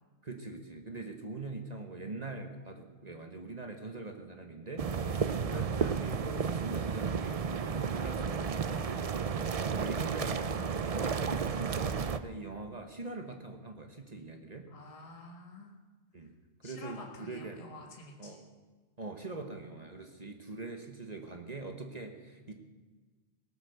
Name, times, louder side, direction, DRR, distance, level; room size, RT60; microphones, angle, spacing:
voice 1, 0.2-8.7 9.6-14.7 16.1-16.3 16.6-17.6 18.2-18.4 19.0-22.5, right 3 dB, 30° right, 4 dB, 1.3 m, -42 dB
sound 1, 4.8-12.2, right 6 dB, 50° right, 0.4 m, -32 dB
voice 2, 5.0-5.7 8.7-9.0 14.7-15.7 16.6-18.4, left 2 dB, 25° left, -1 dB, 1.7 m, -49 dB
18.0 x 9.8 x 7.0 m, 1.4 s
omnidirectional pair, 1.4 m